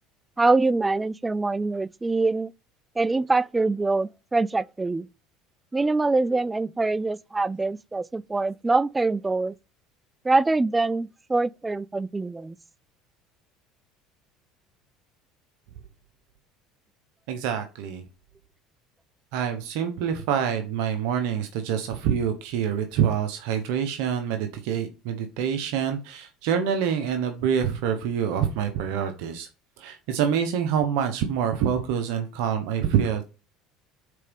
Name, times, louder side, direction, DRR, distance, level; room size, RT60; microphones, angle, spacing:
voice 1, 0.4-2.5 3.0-5.1 5.7-9.5 10.2-12.6, right 3 dB, 15° right, 0.4 m, -24 dB
voice 2, 17.3-18.0 19.3-29.5 29.8-33.2, right 8 dB, 75° right, 1.2 m, -26 dB
6.7 x 4.6 x 5.3 m
supercardioid pair, 90°, 0 cm